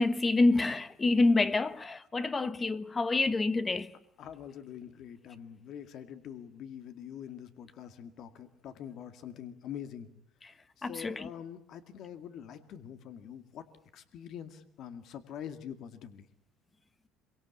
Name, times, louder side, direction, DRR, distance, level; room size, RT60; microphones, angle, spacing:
voice 1, 0.0-3.9 10.8-11.1, left 3 dB, 15° left, 1.2 m, -27 dB
voice 2, 4.2-10.1 10.4-13.7 13.9-16.3, left 9 dB, 45° left, 2.1 m, -45 dB
26.5 x 24.5 x 8.5 m
cardioid pair, 165°, 0 cm